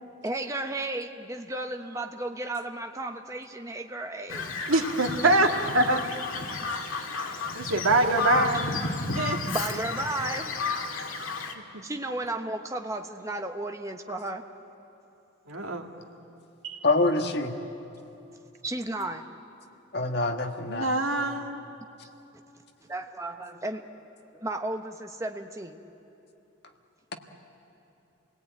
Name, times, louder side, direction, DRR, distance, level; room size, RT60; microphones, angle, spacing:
voice 1, 0.2-4.5 9.5-10.5 11.8-14.4 18.6-19.2 22.9-24.0 24.3-25.8, right 2 dB, 15° right, 5 dB, 1.1 m, -34 dB
Bird vocalization bird call bird song, 4.3-11.5, left 4 dB, 85° left, 2.0 m, -32 dB
voice 2, 4.7-5.5 5.7-6.0 7.5-8.7 9.1-9.4 11.7-11.8 15.5-15.9 16.6-16.8 20.7-21.7, right 2 dB, 90° right, 3 dB, 2.1 m, -24 dB
voice 3, 16.8-17.5 19.9-20.9, left 2 dB, 50° left, 5 dB, 1.5 m, -25 dB
28.5 x 18.5 x 9.1 m, 3.0 s
head